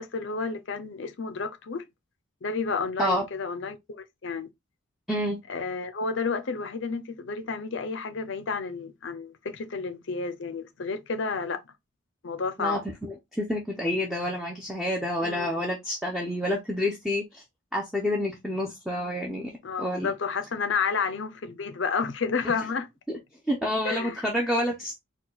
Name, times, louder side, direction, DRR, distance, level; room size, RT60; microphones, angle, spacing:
voice 1, 0.0-1.8 2.4-4.5 5.5-11.7 12.2-12.8 15.2-15.6 19.6-22.9 23.8-24.3, left 5 dB, 65° left, 0.6 m, -31 dB
voice 2, 5.1-5.4 12.6-12.8 13.4-17.4 17.7-19.5 19.8-20.1 23.1-23.2 23.5-25.0, left 1 dB, ahead, 0.7 m, -28 dB
4.4 x 2.3 x 3.9 m
head